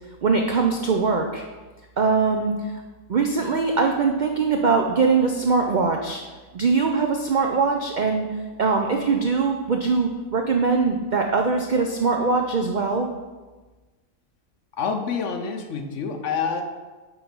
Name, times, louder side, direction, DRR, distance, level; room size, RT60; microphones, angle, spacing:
voice 1, 0.2-1.4 2.0-2.7 3.1-6.2 6.5-8.3 8.6-13.1, right 4 dB, 85° right, 3 dB, 0.4 m, -22 dB
voice 2, 14.8-16.6, left 6 dB, 65° left, 5 dB, 1.0 m, -27 dB
9.0 x 3.1 x 5.2 m, 1.3 s
omnidirectional pair, 1.5 m